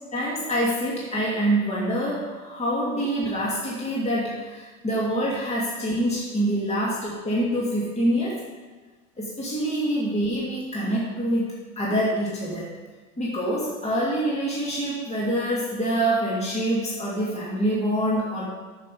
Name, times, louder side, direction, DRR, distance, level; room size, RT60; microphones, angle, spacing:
voice 1, 0.1-8.5 9.2-11.5 11.8-12.7 13.2-18.5, right 1 dB, 15° left, -6 dB, 2.7 m, -26 dB
12.5 x 6.0 x 5.2 m, 1.3 s
hypercardioid pair, 90°, 41 cm